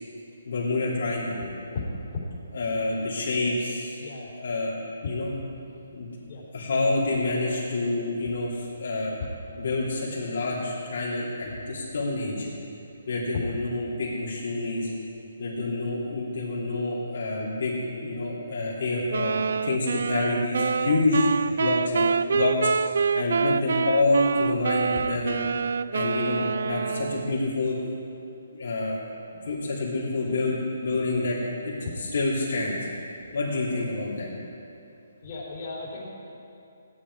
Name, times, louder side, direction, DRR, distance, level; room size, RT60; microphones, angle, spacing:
voice 1, 0.4-1.4 2.5-4.0 4.4-5.3 5.9-6.1 6.5-9.2 9.6-12.5 13.1-14.9 15.4-17.7 18.0-21.3 21.6-22.7 23.1-25.4 25.9-27.8 28.5-29.0 29.4-31.4 32.0-32.8 33.3-34.3, left 2 dB, 60° left, -6 dB, 3.4 m, -27 dB
voice 2, 4.0-4.3 6.3-6.4 35.2-36.1, left 4 dB, 30° left, -7 dB, 3.9 m, -36 dB
sound 1, 19.1-27.5, right 5 dB, 65° right, 0.3 m, -26 dB
17.0 x 10.5 x 4.9 m, 2.7 s
hypercardioid pair, 170°, 0 cm